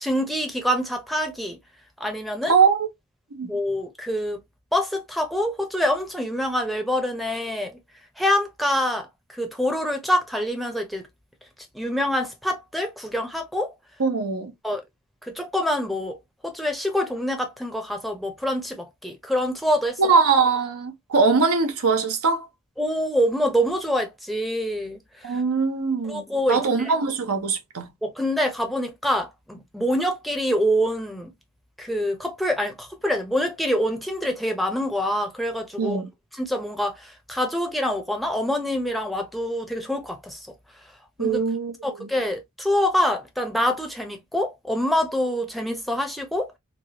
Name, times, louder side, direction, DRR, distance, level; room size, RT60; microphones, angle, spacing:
voice 1, 0.0-1.6 2.0-2.6 3.4-4.4 4.7-7.8 8.2-11.1 11.7-13.7 14.6-14.8 15.2-16.2 16.4-20.0 22.8-25.4 26.0-26.9 28.0-31.3 31.8-36.0 36.3-40.5 41.2-41.4 41.8-46.5, equal, ahead, 0.6 m, -26 dB
voice 2, 2.5-2.9 3.3-3.5 14.0-14.5 20.0-22.5 25.2-27.9 35.8-36.1 41.2-41.7 42.0-42.1, right 5 dB, 70° right, 0.7 m, -22 dB
3.1 x 2.3 x 2.8 m
head